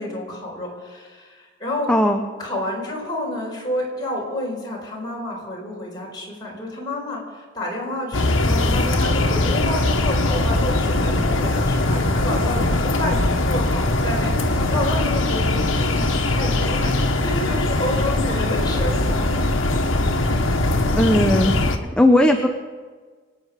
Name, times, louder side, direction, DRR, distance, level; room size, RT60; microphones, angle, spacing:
voice 1, 0.0-1.9 2.4-19.5 20.2-20.6, left 1 dB, 20° left, -3 dB, 4.5 m, -30 dB
voice 2, 1.9-2.2 21.0-21.5 22.0-22.5, left 1 dB, 5° left, 3 dB, 0.7 m, -16 dB
sound 1, 8.1-21.8, left 2 dB, 90° left, 1.4 m, -21 dB
25.0 x 9.2 x 5.0 m, 1.5 s
head